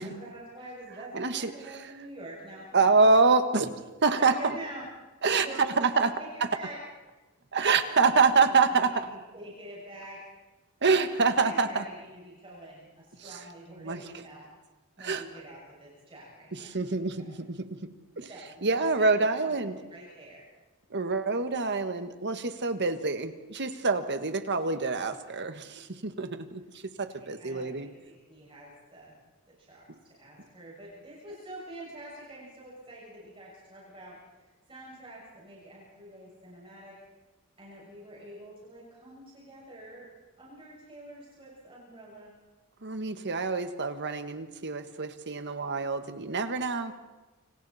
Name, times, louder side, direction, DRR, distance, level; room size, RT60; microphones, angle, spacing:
voice 1, 0.0-3.0 4.2-4.9 5.3-6.8 8.4-10.2 11.4-14.5 15.0-16.8 18.2-20.5 27.2-29.1 29.5-29.8 30.2-36.9 37.6-40.1 40.4-42.3, right 1 dB, 25° right, -6 dB, 6.9 m, -46 dB
voice 2, 1.1-1.8 2.7-4.6 5.2-5.5 5.8-6.1 7.5-9.1 10.8-11.8 13.2-13.4 13.8-14.0 15.0-15.3 16.5-17.6 18.2-18.3 18.6-19.7 20.9-26.6 27.0-27.9 42.8-46.9, right 4 dB, 55° right, 8 dB, 1.7 m, -26 dB
29.0 x 26.5 x 4.3 m, 1.2 s
head